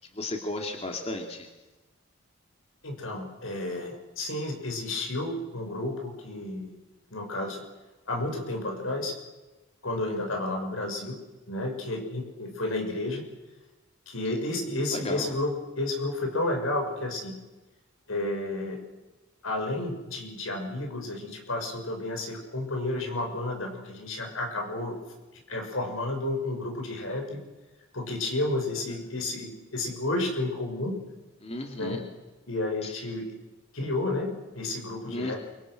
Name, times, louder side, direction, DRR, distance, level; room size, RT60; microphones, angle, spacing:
voice 1, 0.2-1.5 14.9-15.3 31.4-32.0 32.8-33.0 35.1-35.4, left 2 dB, 30° left, 3 dB, 2.5 m, -34 dB
voice 2, 2.8-6.7 7.1-7.6 8.1-9.1 9.8-13.2 14.1-17.4 18.1-18.8 19.4-25.0 25.5-27.4 27.9-31.0 31.8-32.1 32.5-33.3 33.7-35.4, left 2 dB, 80° left, 3 dB, 6.3 m, -31 dB
29.0 x 24.0 x 6.5 m, 1.1 s
head